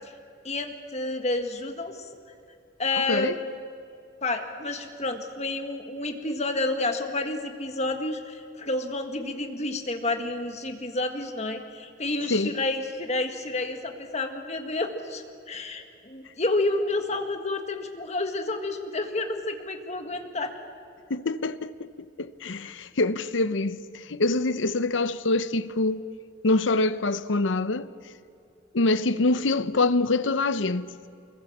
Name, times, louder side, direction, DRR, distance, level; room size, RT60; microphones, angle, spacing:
voice 1, 0.4-2.1 2.8-3.5 4.2-20.5, left 2 dB, 35° left, 1.8 m, -30 dB
voice 2, 3.0-3.4 12.3-12.6 21.1-21.9 22.2-26.0 26.4-27.9 28.7-30.9, left 2 dB, 75° left, 0.8 m, -25 dB
24.5 x 21.5 x 7.3 m
head